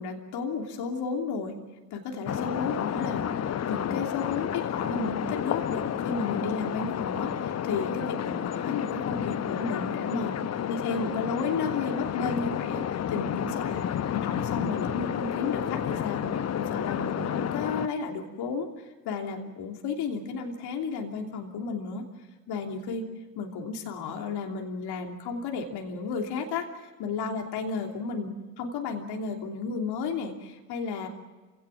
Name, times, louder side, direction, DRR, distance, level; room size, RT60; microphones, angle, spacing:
voice 1, 0.0-1.5 1.9-10.3 10.7-22.0 22.5-23.0 23.3-31.1, left 4 dB, 60° left, 2 dB, 3.1 m, -33 dB
sound 1, 2.3-17.9, left 9 dB, 35° left, 0.9 m, -31 dB
28.0 x 17.5 x 7.4 m, 1.3 s
hypercardioid pair, 55°, 45 cm